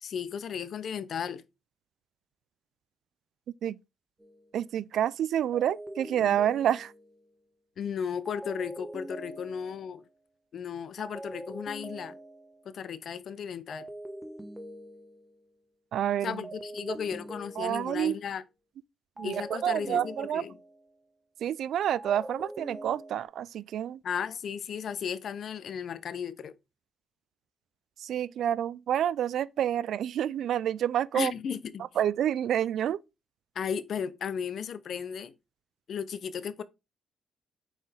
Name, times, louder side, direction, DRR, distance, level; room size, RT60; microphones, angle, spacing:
voice 1, 0.0-1.4 7.8-10.0 10.5-12.2 12.7-13.9 16.2-18.4 19.2-20.6 24.0-26.5 31.1-31.9 33.6-35.3 35.9-36.6, left 7 dB, 60° left, 0.6 m, -35 dB
sound 1, 4.2-4.5 5.5-7.2 8.3-9.9 11.0-12.7 13.7-15.4 16.4-18.2 19.2-20.9 21.9-23.2, right 1 dB, 10° right, 1.2 m, -43 dB
voice 2, 4.5-6.9 15.9-16.4 16.9-17.0 17.6-18.2 19.2-20.4 21.4-24.0 28.0-31.3 32.0-33.0, right 10 dB, 70° right, 0.4 m, -28 dB
7.0 x 4.4 x 3.4 m
cardioid pair, 90°, 0 cm